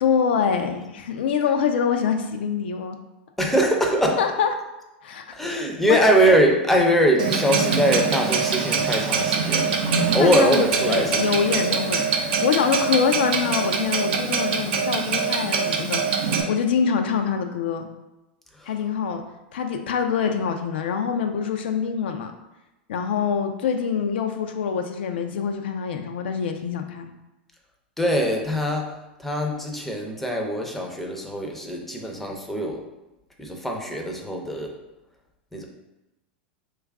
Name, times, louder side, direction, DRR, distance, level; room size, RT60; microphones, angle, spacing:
voice 1, 0.0-3.0 4.2-4.5 5.0-5.6 5.9-6.0 10.2-12.1 12.4-16.0 16.5-17.9 18.6-19.2 19.5-22.3 22.9-27.1, left 7 dB, 75° left, 5 dB, 0.3 m, -25 dB
voice 2, 3.4-4.2 5.3-9.8 10.1-11.3 11.7-11.9 18.5-18.7 28.0-32.8 33.4-34.7 35.5-35.7, equal, 5° left, 1 dB, 0.6 m, -22 dB
Clock, 7.2-16.4, right 5 dB, 75° right, 0.5 m, -24 dB
3.1 x 2.3 x 3.5 m, 0.98 s
hypercardioid pair, 105°, 6 cm